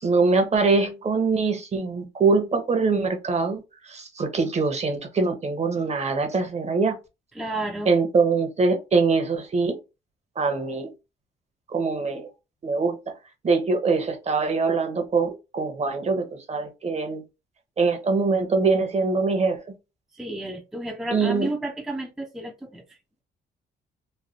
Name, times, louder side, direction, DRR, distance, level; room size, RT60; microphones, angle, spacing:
voice 1, 0.0-7.0 7.9-9.8 10.4-10.9 11.7-12.3 12.6-13.1 13.4-17.2 17.8-19.6 21.1-21.5, right 4 dB, 35° right, 0.8 m, -23 dB
voice 2, 7.3-7.9 20.1-23.0, right 1 dB, 5° right, 0.5 m, -32 dB
3.2 x 2.2 x 2.7 m
cardioid pair, 90°, 20 cm